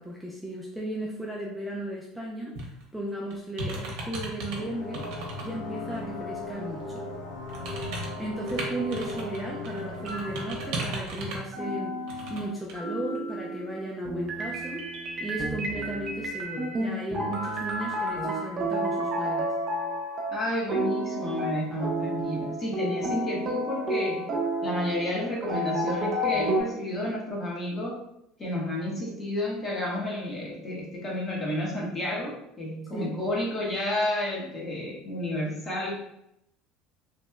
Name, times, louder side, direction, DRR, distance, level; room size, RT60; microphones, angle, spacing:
voice 1, 0.0-2.5 2.9-5.0 5.4-7.0 8.2-12.0 12.3-14.8 15.2-19.5 32.9-33.2, right 1 dB, ahead, -4 dB, 0.5 m, -35 dB
sound 1, 2.6-2.8 3.3-4.6 4.9-5.5 5.9-6.0 7.5-9.4 9.6-11.5 12.1-12.4 12.7-12.8, right 2 dB, 70° right, 0.8 m, -36 dB
sound 2, 4.6-11.0, left 2 dB, 85° left, 0.6 m, -37 dB
sound 3, 9.7-10.9 11.5-26.6, right 1 dB, 40° right, 0.7 m, -31 dB
voice 2, 20.3-24.3 24.6-28.0 28.4-36.1, left 1 dB, 30° left, -4 dB, 1.2 m, -31 dB
3.0 x 2.7 x 2.2 m, 0.80 s
supercardioid pair, 95°, 0 cm